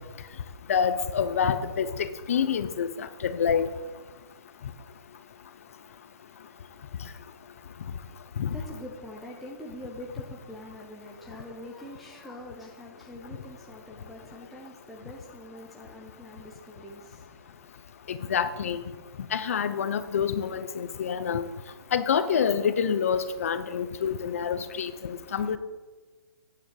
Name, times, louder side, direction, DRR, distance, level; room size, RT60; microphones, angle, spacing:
voice 1, 0.7-1.9 2.3-2.9 3.2-3.7 8.4-8.5 18.1-18.8 19.3-21.4 21.9-24.9 25.3-25.6, left 7 dB, 35° left, 12 dB, 0.7 m, -26 dB
voice 2, 8.4-17.7, left 1 dB, ahead, -3 dB, 0.4 m, -44 dB
9.1 x 7.5 x 8.5 m, 1.3 s
hypercardioid pair, 175°, 13 cm